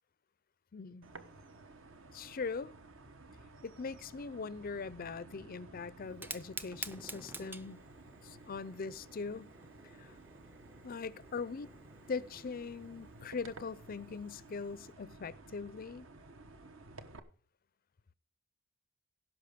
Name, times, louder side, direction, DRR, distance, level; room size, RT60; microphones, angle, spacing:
voice 1, 0.7-1.1 2.1-2.7 3.6-7.8 8.2-9.5 9.8-10.2 10.8-11.7 12.1-16.1, left 4 dB, 40° left, 0.5 m, -41 dB
sound 1, 1.0-17.2, right 2 dB, 60° right, 1.2 m, -55 dB
Fire, 6.1-14.9, right 2 dB, 10° right, 0.5 m, -50 dB
16.5 x 6.2 x 5.1 m
head